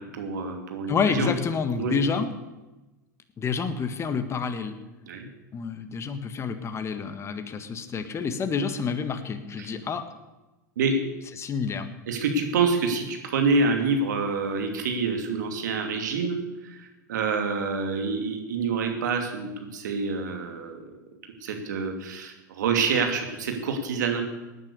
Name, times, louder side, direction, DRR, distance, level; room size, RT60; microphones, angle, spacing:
voice 1, 0.0-1.3 1.8-1.9 5.1-5.3 9.6-9.7 10.8-10.9 12.1-16.4 16.6-20.8 21.4-24.2, right 4 dB, 75° right, 4 dB, 2.8 m, -27 dB
voice 2, 0.9-2.3 3.4-4.8 5.5-10.0 11.4-11.9, left 5 dB, 25° left, 9 dB, 1.6 m, -28 dB
18.0 x 9.7 x 6.9 m, 1.1 s
hypercardioid pair, 90°, 10 cm